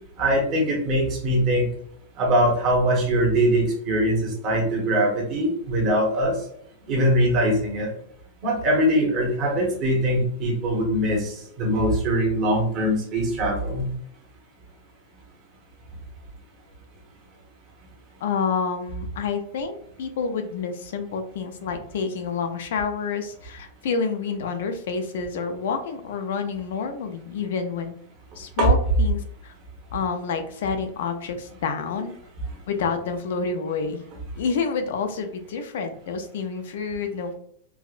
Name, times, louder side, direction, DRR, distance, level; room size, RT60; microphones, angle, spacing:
voice 1, 0.2-1.7 2.2-6.3 6.9-7.9 8.4-13.9 28.6-28.7, equal, 25° right, -2 dB, 1.0 m, -22 dB
voice 2, 18.2-27.9 28.4-29.5 29.9-32.1 32.7-34.0 34.4-37.3, left 5 dB, 65° left, 7 dB, 0.5 m, -28 dB
4.6 x 2.2 x 2.4 m, 0.67 s
supercardioid pair, 175°, 0 cm